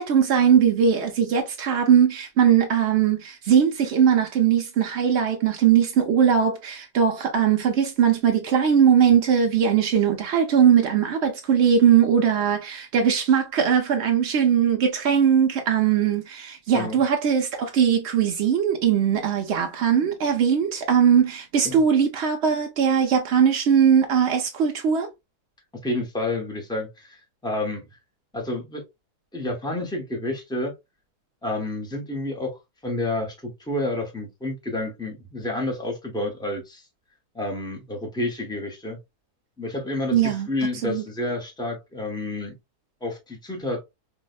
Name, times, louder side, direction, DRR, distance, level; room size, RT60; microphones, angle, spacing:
voice 1, 0.0-25.1 40.1-40.5 40.8-41.0, right 8 dB, 75° right, 0.6 m, -20 dB
voice 2, 25.8-27.9 28.3-28.8 29.3-30.7 31.4-36.8 37.3-39.0 39.6-42.5 43.0-43.8, left 2 dB, 5° left, 0.4 m, -29 dB
4.6 x 2.2 x 2.3 m
omnidirectional pair, 1.7 m